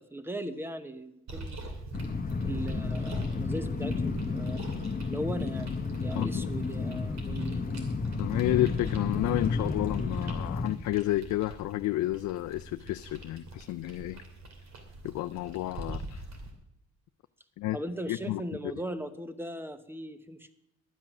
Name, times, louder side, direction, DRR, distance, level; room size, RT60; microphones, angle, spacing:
voice 1, 0.0-1.7 2.4-4.6 5.0-5.7 6.0-7.7 17.7-20.5, right 1 dB, 5° right, 11 dB, 0.9 m, -38 dB
sound 1, 1.3-16.5, right 2 dB, 60° right, 2.7 m, -44 dB
sound 2, 1.9-10.7, left 4 dB, 30° left, 1.2 m, -32 dB
voice 2, 6.1-6.5 8.2-14.2 15.0-16.2 17.6-17.8 18.1-18.4, left 15 dB, 75° left, 9 dB, 0.5 m, -31 dB
12.0 x 8.7 x 6.0 m, 0.83 s
cardioid pair, 90°, 30 cm